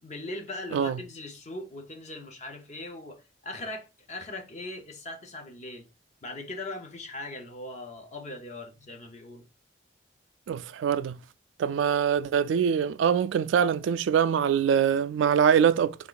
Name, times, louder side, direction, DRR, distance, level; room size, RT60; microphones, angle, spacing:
voice 1, 0.0-5.9 6.2-9.5, left 2 dB, 40° left, 0.8 m, -40 dB
voice 2, 10.5-11.2 11.6-16.0, right 7 dB, 90° right, 0.3 m, -23 dB
3.6 x 2.5 x 3.7 m
head